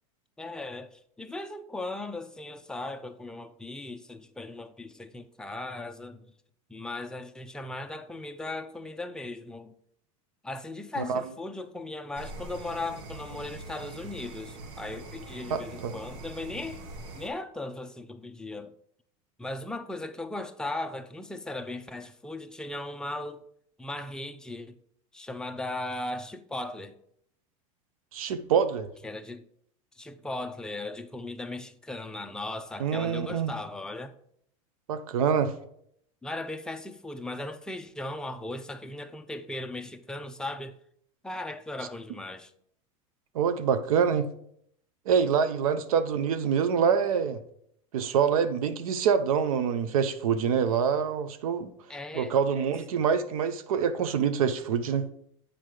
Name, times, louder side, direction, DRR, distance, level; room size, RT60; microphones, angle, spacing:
voice 1, 0.4-6.3 6.7-9.8 10.4-16.8 17.1-18.7 19.4-23.4 23.8-24.7 25.1-27.0 29.0-29.5 30.0-34.1 36.2-40.8 41.2-42.5 51.9-52.3, left 2 dB, 5° left, 0.6 m, -37 dB
sound 1, 12.1-17.3, right 2 dB, 60° right, 1.4 m, -43 dB
voice 2, 15.5-15.9 28.1-28.9 32.8-33.5 34.9-35.5 43.3-44.3 45.1-47.4 47.9-51.7 52.1-55.1, right 7 dB, 85° right, 0.8 m, -25 dB
7.6 x 5.1 x 4.9 m
supercardioid pair, 115°, 18 cm